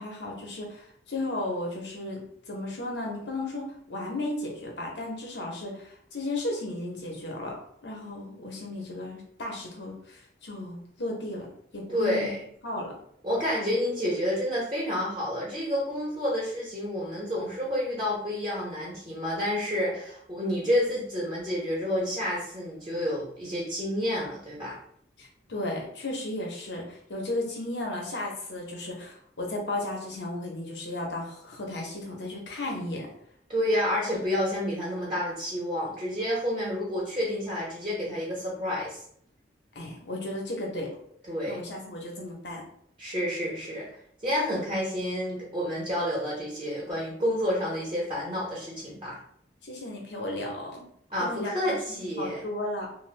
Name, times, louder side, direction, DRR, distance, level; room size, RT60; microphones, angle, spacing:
voice 1, 0.0-7.6 7.8-11.5 11.7-12.3 12.6-13.0 25.2-33.1 39.7-40.9 41.5-42.6 49.6-50.9 51.2-51.7 52.2-52.9, left 1 dB, 80° left, -1 dB, 0.9 m, -34 dB
voice 2, 11.9-12.4 13.2-24.7 33.5-39.0 41.3-41.6 43.0-43.8 44.2-49.2 51.1-52.4, equal, 30° right, -7 dB, 0.9 m, -29 dB
2.6 x 2.2 x 3.3 m, 0.68 s
head